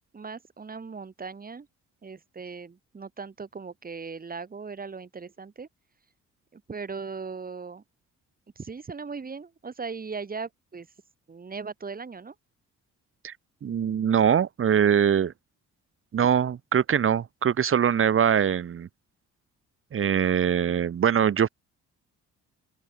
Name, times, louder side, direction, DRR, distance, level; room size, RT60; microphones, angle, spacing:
voice 1, 0.1-1.7 2.0-5.7 6.5-7.8 8.6-10.9 11.3-12.3, right 5 dB, 30° right, 2.1 m, -38 dB
voice 2, 13.6-15.3 16.1-18.9 19.9-21.5, right 8 dB, 45° right, 1.3 m, -22 dB
open air
cardioid pair, 90°, 30 cm